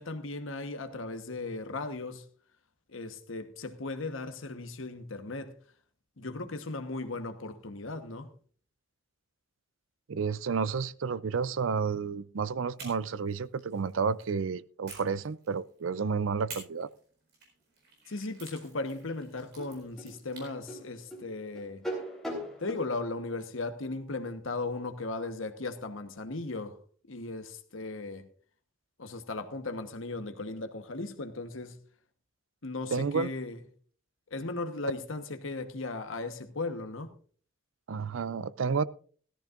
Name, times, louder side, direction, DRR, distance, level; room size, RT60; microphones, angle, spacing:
voice 1, 0.0-2.3 2.9-5.5 6.2-8.3 18.1-21.8 22.6-26.8 27.1-28.3 29.0-31.8 32.6-33.6 34.3-37.1, left 3 dB, 90° left, 1.2 m, -37 dB
voice 2, 10.1-16.9 32.9-33.3 37.9-38.8, right 5 dB, 85° right, 0.5 m, -31 dB
sound 1, 12.8-14.3 14.9-15.9 16.5-20.5, right 4 dB, 50° right, 4.3 m, -50 dB
sound 2, 19.6-22.9, equal, ahead, 3.6 m, -39 dB
17.0 x 14.0 x 2.5 m
head